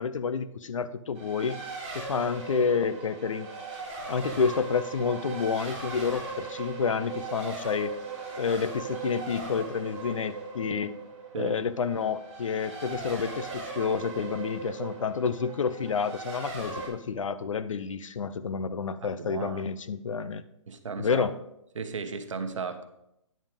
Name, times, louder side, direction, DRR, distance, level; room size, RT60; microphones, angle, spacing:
voice 1, 0.0-1.6 1.9-3.5 4.1-8.0 8.4-11.0 11.4-20.4 21.0-21.3, left 6 dB, 80° left, 14 dB, 0.6 m, -29 dB
Race car auto racing, 1.1-16.9, right 4 dB, 25° right, 3.7 m, -38 dB
voice 2, 19.1-19.6 20.7-21.3 21.7-22.8, right 5 dB, 75° right, 8 dB, 1.1 m, -35 dB
9.5 x 7.3 x 3.6 m, 0.80 s
hypercardioid pair, 175°, 16 cm